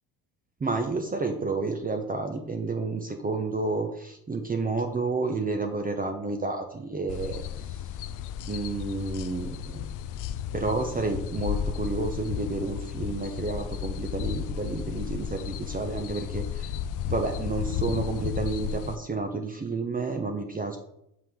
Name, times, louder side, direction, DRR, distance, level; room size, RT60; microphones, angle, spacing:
voice 1, 0.6-7.9 8.5-9.9 10.5-16.7 17.1-20.8, right 3 dB, 20° right, 4 dB, 0.7 m, -30 dB
sound 1, 7.1-19.0, left 9 dB, 45° left, 0.4 m, -33 dB
5.9 x 4.8 x 3.6 m, 0.78 s
hypercardioid pair, 70°, 45 cm